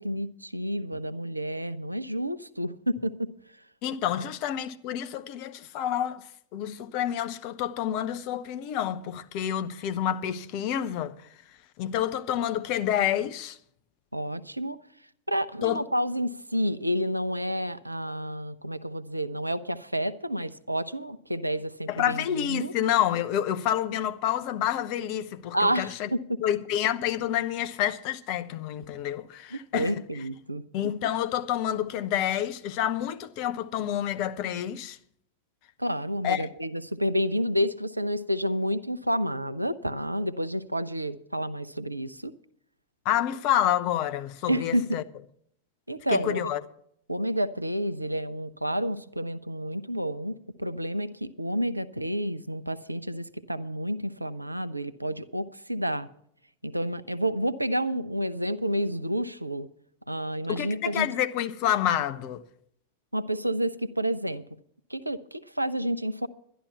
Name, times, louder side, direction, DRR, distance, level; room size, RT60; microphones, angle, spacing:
voice 1, 0.0-3.3 14.1-14.8 15.3-22.7 25.5-26.4 29.5-30.6 35.8-42.4 44.5-45.0 45.9-46.5 47.1-56.1 56.6-59.7 60.1-61.1 63.1-64.4 64.9-66.3, equal, 85° right, 0.5 m, -30 dB
voice 2, 3.8-11.3 11.8-13.6 15.6-15.8 21.9-26.1 26.4-29.9 30.7-35.0 36.2-36.5 43.0-45.0 46.1-46.6 60.5-62.4, left 11 dB, 45° left, 0.7 m, -28 dB
11.5 x 11.0 x 5.7 m
figure-of-eight pair, 90°, 0 cm